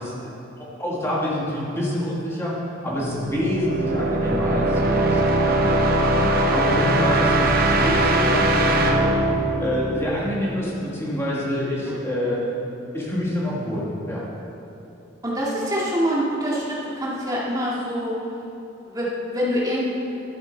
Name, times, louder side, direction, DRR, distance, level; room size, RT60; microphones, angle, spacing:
voice 1, 0.0-2.5 2.8-9.1 9.6-12.4 12.9-14.2, equal, 10° left, -5 dB, 1.5 m, -27 dB
sound 1, 3.0-10.7, right 1 dB, 45° right, 0.8 m, -21 dB
voice 2, 15.2-18.1 18.9-19.9, equal, 20° right, -6 dB, 1.8 m, -25 dB
12.0 x 7.8 x 4.4 m, 2.9 s
head